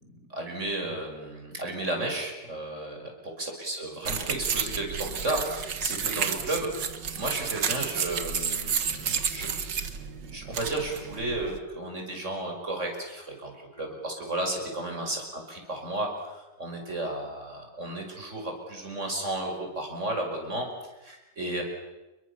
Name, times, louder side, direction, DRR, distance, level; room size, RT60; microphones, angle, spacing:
voice 1, 0.3-9.5 10.2-21.6, right 2 dB, 40° right, 2 dB, 6.3 m, -33 dB
sound 1, 4.1-11.6, right 7 dB, 85° right, 2.2 m, -31 dB
30.0 x 23.0 x 7.1 m, 1.1 s
omnidirectional pair, 1.8 m